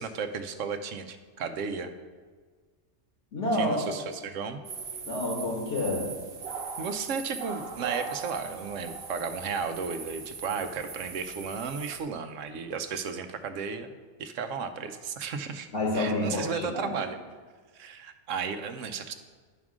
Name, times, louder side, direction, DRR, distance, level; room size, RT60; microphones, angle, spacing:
voice 1, 0.0-1.9 3.5-4.6 6.8-13.9 14.2-15.7 15.9-17.2 17.7-19.1, right 5 dB, 80° right, 8 dB, 1.0 m, -34 dB
voice 2, 3.3-3.8 5.1-6.1 15.7-16.9, left 1 dB, 65° left, -2 dB, 1.6 m, -28 dB
sound 1, 4.6-12.0, right 5 dB, 55° right, 1.0 m, -39 dB
10.0 x 3.6 x 6.1 m, 1.5 s
omnidirectional pair, 1.3 m